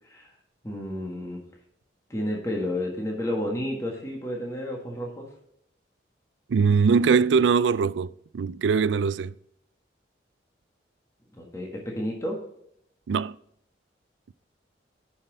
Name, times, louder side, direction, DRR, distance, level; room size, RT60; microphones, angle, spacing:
voice 1, 0.6-1.4 2.1-5.3 11.3-12.4, left 1 dB, 15° left, 1.5 m, -31 dB
voice 2, 6.5-9.3 13.1-13.3, right 5 dB, 80° right, 0.3 m, -22 dB
11.0 x 5.7 x 4.0 m
head